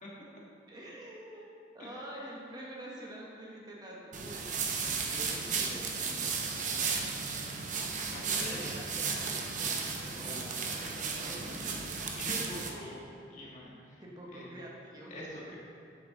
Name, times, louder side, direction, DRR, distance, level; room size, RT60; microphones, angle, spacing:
voice 1, 0.7-1.5 1.7-4.7 5.3-5.8 6.7-6.8 8.4-11.6 12.3-12.4 14.0-15.2, right 1 dB, 25° right, -3 dB, 1.2 m, -47 dB
sound 1, 4.1-12.7, right 5 dB, 45° right, 0.7 m, -34 dB
voice 2, 4.8-5.8 8.1-8.7 10.2-10.4 12.2-13.0 13.3-14.0 14.3-14.5 15.1-15.6, left 1 dB, 45° left, -5 dB, 1.8 m, -44 dB
9.5 x 6.7 x 3.8 m, 2.7 s
head